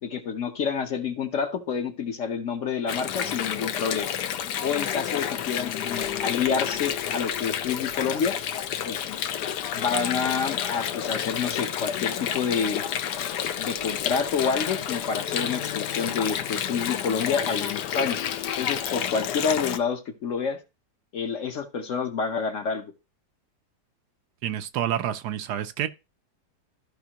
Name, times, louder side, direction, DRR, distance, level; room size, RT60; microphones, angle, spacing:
voice 1, 0.0-4.1 4.6-8.3 8.8-9.2 9.7-12.8 13.6-18.2 18.6-20.6 21.1-22.8, left 6 dB, 55° left, 1.1 m, -28 dB
Water, 2.9-19.8, left 9 dB, 80° left, 1.3 m, -30 dB
voice 2, 24.4-25.9, right 10 dB, 75° right, 1.2 m, -28 dB
13.5 x 5.3 x 2.9 m
omnidirectional pair, 1.8 m